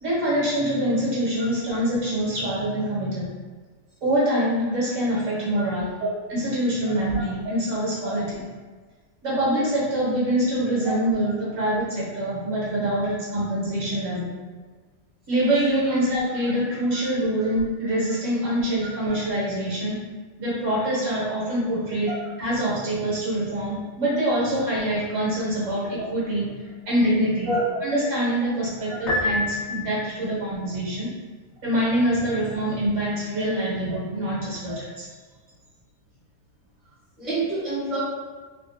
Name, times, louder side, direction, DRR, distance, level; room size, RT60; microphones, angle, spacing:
voice 1, 0.0-3.3 4.0-6.0 6.3-8.5 9.2-14.4 15.3-20.0 20.4-31.1 31.6-35.1, right 1 dB, 60° right, -7 dB, 1.1 m, -25 dB
voice 2, 1.4-1.8 5.5-5.6 7.1-7.2 8.0-8.1 10.8-11.0 11.6-11.7 16.9-17.0 17.3-17.4 22.1-22.2 27.5-27.8 28.9-29.0 34.7-34.8 37.2-38.0, right 2 dB, ahead, -10 dB, 0.7 m, -29 dB
Piano, 29.1-30.3, left 2 dB, 65° left, 0.9 m, -27 dB
2.7 x 2.4 x 2.5 m, 1.4 s
omnidirectional pair, 1.7 m